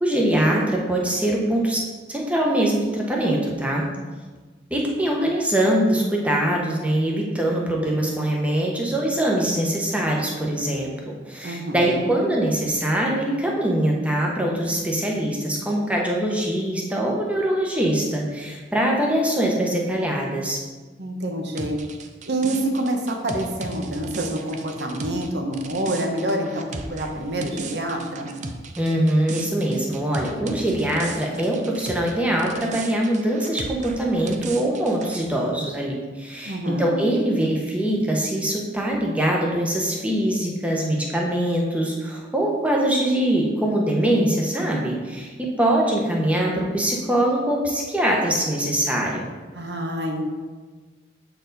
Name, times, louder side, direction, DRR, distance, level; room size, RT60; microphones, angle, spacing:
voice 1, 0.0-1.8 2.1-3.9 4.7-10.9 11.3-20.6 28.8-45.3 45.6-49.3, right 1 dB, 10° right, -2 dB, 1.0 m, -23 dB
voice 2, 11.4-12.2 21.0-21.8 22.3-28.4 36.4-37.0 49.5-50.3, right 1 dB, 70° right, 3 dB, 1.0 m, -27 dB
sound 1, 21.6-32.1 32.4-35.3, right 3 dB, 40° right, 0.5 m, -36 dB
7.6 x 4.6 x 4.0 m, 1.4 s
head